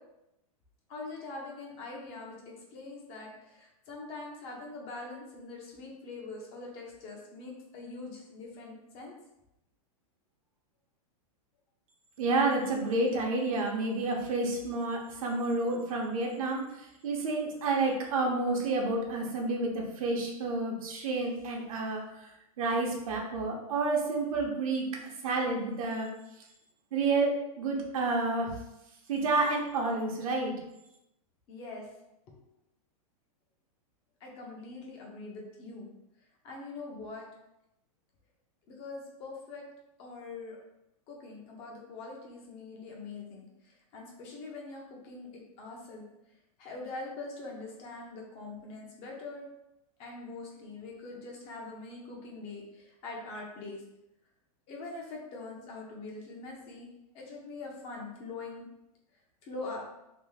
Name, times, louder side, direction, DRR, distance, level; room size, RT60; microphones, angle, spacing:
voice 1, 0.9-9.1 31.5-31.9 32.3-32.4 34.2-35.9 36.4-37.2 38.7-39.6 40.0-40.6 41.1-46.0 46.6-49.4 50.0-53.8 54.7-56.9 57.1-58.6 59.4-59.8, left 3 dB, 30° left, -1 dB, 0.8 m, -43 dB
voice 2, 12.2-16.6 17.0-22.3 22.6-24.8 25.2-26.1 26.9-28.5 29.1-30.5, right 3 dB, 70° right, 0 dB, 0.9 m, -29 dB
3.0 x 2.6 x 3.5 m, 0.88 s
supercardioid pair, 155°, 19 cm